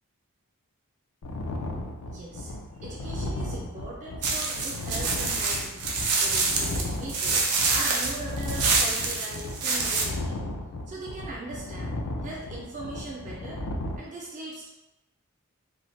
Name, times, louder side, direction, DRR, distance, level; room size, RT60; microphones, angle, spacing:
sound 1, 1.2-14.0, left 2 dB, 70° left, 0.4 m, -35 dB
voice 1, 2.1-5.8 6.2-10.4 10.9-13.6 14.0-14.7, right 2 dB, 35° right, -3 dB, 0.4 m, -40 dB
sound 2, 4.2-10.0, right 4 dB, 85° right, 0.5 m, -26 dB
3.0 x 2.0 x 2.7 m, 0.98 s
head